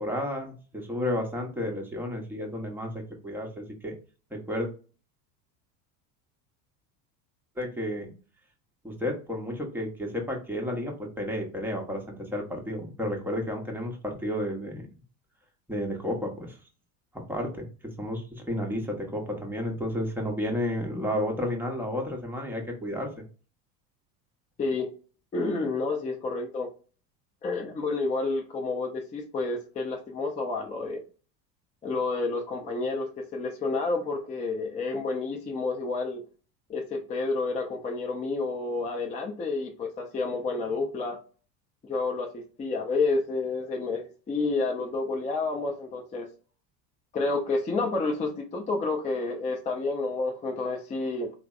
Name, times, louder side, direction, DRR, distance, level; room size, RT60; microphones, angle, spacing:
voice 1, 0.0-3.9 4.3-4.7 7.6-8.1 8.8-14.9 15.7-16.6 17.1-17.7 18.0-23.1, left 1 dB, 5° right, 0.8 m, -32 dB
voice 2, 24.6-24.9 25.3-26.7 27.4-31.0 31.8-36.2 36.7-41.2 41.8-46.3 47.1-51.3, left 3 dB, 15° left, 0.4 m, -30 dB
3.3 x 2.1 x 2.3 m
hypercardioid pair, 90°, 49 cm